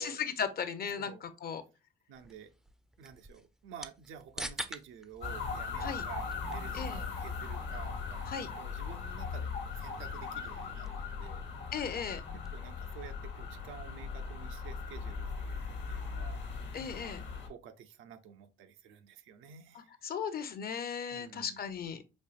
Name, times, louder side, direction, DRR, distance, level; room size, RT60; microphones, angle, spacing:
voice 1, 0.0-1.6 5.8-6.0 6.7-7.0 8.3-8.5 11.7-12.2 16.7-17.2 19.7-22.0, left 7 dB, 50° left, 0.6 m, -36 dB
sound 1, 2.1-12.8, right 1 dB, ahead, 0.3 m, -49 dB
voice 2, 2.1-2.5 3.0-11.4 12.5-15.6 15.9-16.4 17.4-19.9 21.1-21.6, right 8 dB, 85° right, 0.5 m, -51 dB
sound 2, 5.2-17.5, left 5 dB, 70° left, 1.1 m, -39 dB
4.3 x 2.8 x 2.4 m
cardioid pair, 90°, 20 cm